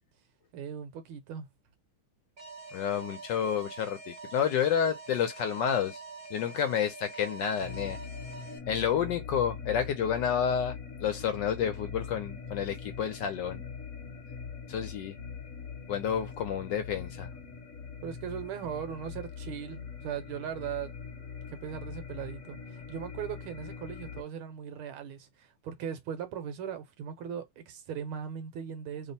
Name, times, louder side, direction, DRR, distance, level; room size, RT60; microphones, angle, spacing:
voice 1, 0.5-1.5 18.0-20.9 21.5-29.1, right 8 dB, 75° right, 1.6 m, -39 dB
Alarm, 2.4-8.6, right 3 dB, 45° right, 0.8 m, -46 dB
voice 2, 2.7-6.0 6.3-8.0 8.5-13.6 14.7-15.2 15.9-17.3, left 8 dB, 70° left, 1.1 m, -30 dB
sound 1, 7.6-24.2, left 6 dB, 45° left, 1.3 m, -42 dB
3.5 x 2.1 x 4.1 m
omnidirectional pair, 2.3 m